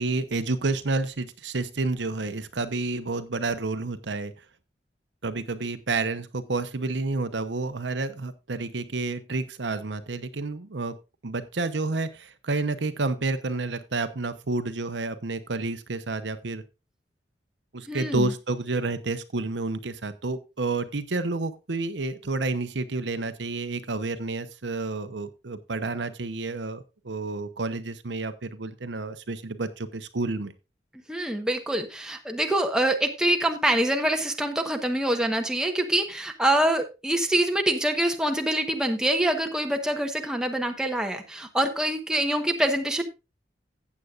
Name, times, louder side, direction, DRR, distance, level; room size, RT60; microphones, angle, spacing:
voice 1, 0.0-4.3 5.2-11.0 11.2-16.6 17.7-30.5, right 3 dB, 85° right, 10 dB, 0.9 m, -30 dB
voice 2, 17.9-18.3 31.1-43.0, right 1 dB, 5° right, 4 dB, 1.1 m, -25 dB
14.5 x 8.4 x 2.5 m, 0.27 s
head